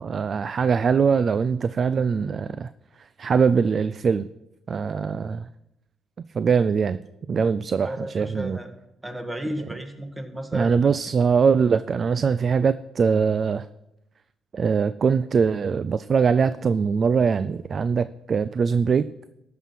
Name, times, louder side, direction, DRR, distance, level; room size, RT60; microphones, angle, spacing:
voice 1, 0.0-2.7 3.2-4.3 4.7-5.5 6.3-7.0 7.3-8.6 10.5-13.7 14.5-19.1, right 6 dB, 45° right, 0.3 m, -22 dB
voice 2, 7.8-8.7 9.0-11.0, right 1 dB, 15° right, 1.5 m, -33 dB
13.5 x 5.7 x 5.8 m
cardioid pair, 90°, 0 cm